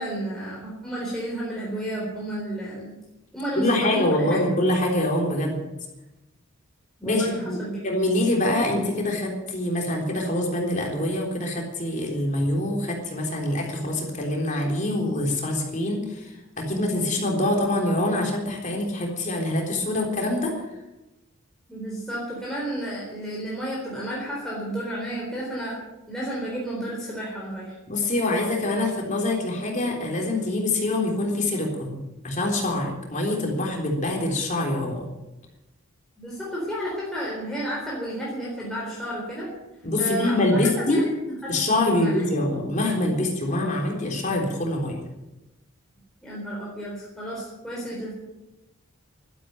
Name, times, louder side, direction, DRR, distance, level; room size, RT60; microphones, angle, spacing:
voice 1, 0.0-2.9 3.3-4.4 7.0-7.8 21.7-25.8 26.1-27.7 36.2-39.5 40.0-40.6 41.0-41.1 41.4-42.3 46.2-48.1, right 1 dB, ahead, -6 dB, 4.1 m, -32 dB
voice 2, 3.6-5.6 7.0-7.6 7.8-20.5 27.9-35.1 39.8-41.0 41.5-45.0, left 1 dB, 35° left, 0 dB, 3.6 m, -25 dB
12.5 x 12.0 x 9.0 m, 0.99 s
head